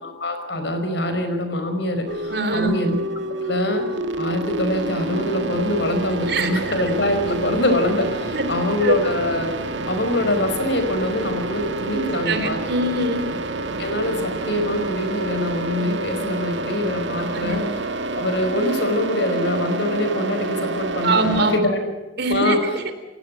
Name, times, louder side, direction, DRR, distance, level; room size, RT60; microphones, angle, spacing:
voice 1, 0.0-3.0 3.4-3.9 4.2-9.6 9.9-12.6 13.8-17.6 18.1-21.8 22.3-22.6, left 1 dB, 65° left, 7 dB, 5.1 m, -24 dB
sound 1, 2.1-21.6, right 2 dB, 80° right, 1.8 m, -28 dB
voice 2, 2.3-2.8 6.3-6.7 8.3-8.5 8.8-8.9 11.9-13.3 17.3-17.6 21.0-21.5 22.2-22.9, right 2 dB, 60° right, 9 dB, 3.2 m, -23 dB
28.5 x 16.5 x 7.7 m, 1.2 s
head